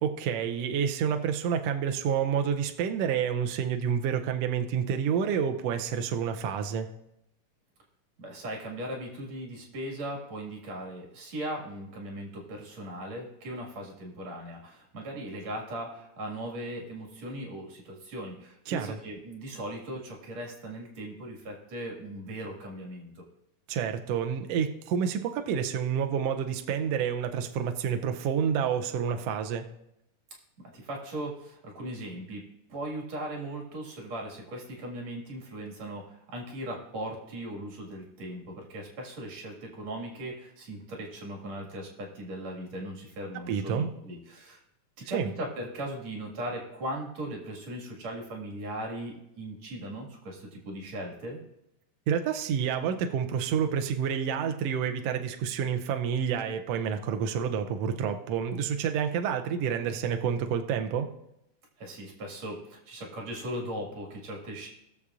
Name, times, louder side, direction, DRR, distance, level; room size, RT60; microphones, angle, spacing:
voice 1, 0.0-6.9 18.7-19.0 23.7-29.7 43.3-43.9 45.1-45.3 52.1-61.1, right 7 dB, 80° right, 6 dB, 1.4 m, -29 dB
voice 2, 8.2-23.2 30.7-32.4 32.7-44.6 45.0-51.4 61.8-64.7, right 1 dB, 60° right, -1 dB, 3.1 m, -38 dB
20.0 x 6.9 x 2.5 m, 0.84 s
omnidirectional pair, 3.5 m